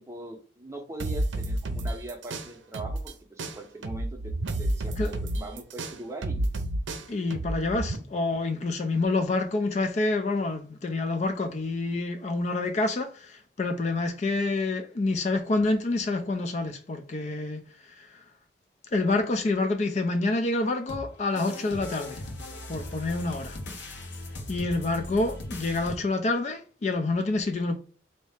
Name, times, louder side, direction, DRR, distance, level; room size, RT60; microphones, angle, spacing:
voice 1, 0.0-4.3 4.6-6.5, right 2 dB, 15° right, 0.6 m, -41 dB
sound 1, 1.0-3.1 3.4-8.0, right 1 dB, 90° right, 0.6 m, -30 dB
voice 2, 7.1-18.2 18.9-22.2 22.7-23.6 24.5-27.8, left 2 dB, 40° left, 0.3 m, -27 dB
sound 2, 20.9-26.0, left 2 dB, 75° left, 0.9 m, -39 dB
4.0 x 2.7 x 3.4 m
head